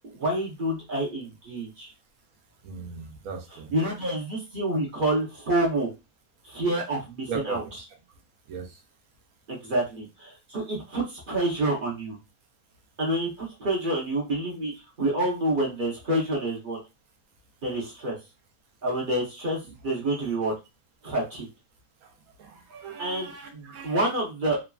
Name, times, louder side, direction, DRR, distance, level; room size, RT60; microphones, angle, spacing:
voice 1, 0.1-1.9 3.7-5.9 6.4-7.6 9.5-12.2 13.0-14.7 15.0-16.8 17.6-18.2 18.8-20.5 21.0-21.5 23.0-24.6, right 1 dB, 45° right, -3 dB, 0.8 m, -28 dB
voice 2, 2.6-3.7 7.3-7.7 8.5-8.8 22.0-22.1 22.4-24.0, right 5 dB, 70° right, 4 dB, 1.1 m, -38 dB
3.0 x 2.4 x 2.3 m, 0.26 s
omnidirectional pair, 1.6 m